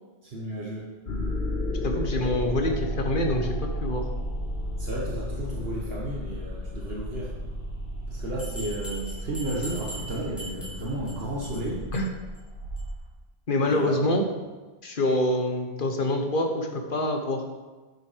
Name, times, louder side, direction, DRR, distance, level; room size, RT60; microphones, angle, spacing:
voice 1, 0.2-0.9 4.8-7.3 8.1-11.8 13.7-14.0, right 1 dB, 70° right, -4 dB, 1.7 m, -33 dB
sound 1, 1.1-13.0, left 1 dB, 85° left, 1.8 m, -33 dB
voice 2, 1.8-4.1 11.9-12.1 13.5-14.2 14.8-17.4, left 1 dB, 55° left, 3 dB, 1.4 m, -26 dB
Bell, 8.4-11.1 11.4-11.6 11.9-12.0 12.3-12.4 12.8-12.9, right 1 dB, ahead, 3.6 m, -40 dB
10.5 x 6.6 x 5.1 m, 1.3 s
omnidirectional pair, 1.1 m